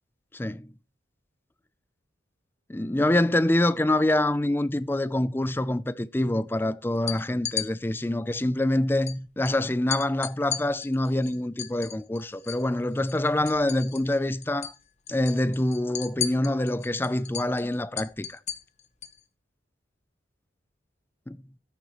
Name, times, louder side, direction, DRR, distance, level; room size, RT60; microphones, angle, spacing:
voice 1, 0.3-0.7 2.7-14.7 15.1-18.4 21.3-21.4, left 1 dB, 10° left, 0.4 m, -26 dB
sound 1, 6.9-7.7 9.1-9.2 9.4-9.6 9.9-12.7 13.0-14.2 14.4-14.8 15.1-19.2, left 9 dB, 35° left, 1.0 m, -35 dB
13.5 x 9.1 x 3.0 m
head